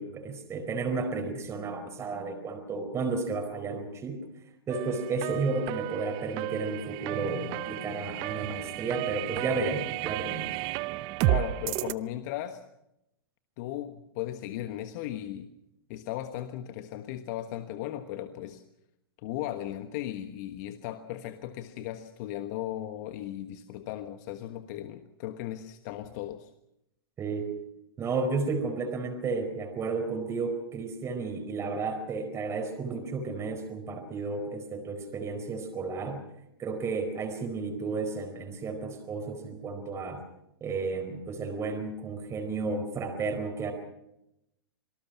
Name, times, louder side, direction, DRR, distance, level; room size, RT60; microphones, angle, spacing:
voice 1, 0.0-4.2 4.7-10.5 27.2-27.5 28.0-36.2 36.6-40.2 40.6-43.7, right 4 dB, 20° right, 4 dB, 4.6 m, -32 dB
sound 1, 4.7-11.9, right 20 dB, 35° right, 0.8 m, -32 dB
voice 2, 11.2-12.6 13.6-15.5 15.9-18.6 19.2-26.5, left 12 dB, 45° left, 9 dB, 1.3 m, -36 dB
26.5 x 19.0 x 6.0 m, 0.82 s
hypercardioid pair, 115°, 13 cm